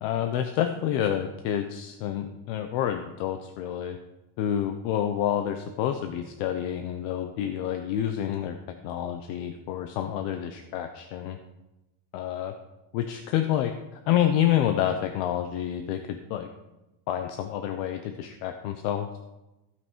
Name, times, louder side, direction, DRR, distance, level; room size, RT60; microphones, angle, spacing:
voice 1, 0.0-4.0 4.4-8.6 8.8-11.4 12.1-12.5 12.9-16.5 17.1-19.2, left 10 dB, 55° left, 7 dB, 0.8 m, -28 dB
15.5 x 6.0 x 4.6 m, 1.0 s
cardioid pair, 180°, 42 cm